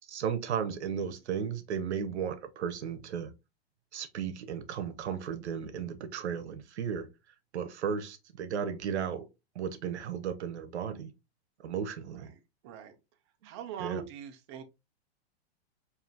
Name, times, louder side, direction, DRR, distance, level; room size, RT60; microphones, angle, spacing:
voice 1, 0.1-3.3 3.9-7.1 7.5-9.3 9.5-11.1 11.6-12.3 13.8-14.0, right 7 dB, 80° right, 0.9 m, -35 dB
voice 2, 12.1-13.0 13.4-14.6, right 7 dB, 25° right, 0.5 m, -43 dB
5.5 x 2.7 x 2.5 m
hypercardioid pair, 160°, 33 cm